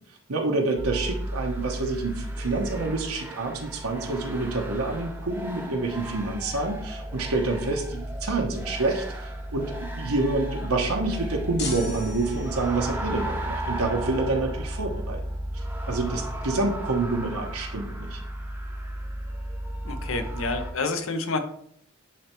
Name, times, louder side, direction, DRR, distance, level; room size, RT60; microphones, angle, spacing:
voice 1, 0.3-15.2 15.5-18.2, right 3 dB, 85° right, 1 dB, 1.0 m, -28 dB
sound 1, 0.8-20.7, right 1 dB, 10° right, 0.7 m, -34 dB
sound 2, 11.6-12.9, left 4 dB, 50° left, 1.0 m, -37 dB
voice 2, 19.8-21.4, left 3 dB, 70° left, 7 dB, 0.8 m, -28 dB
10.0 x 3.3 x 3.0 m, 0.66 s
head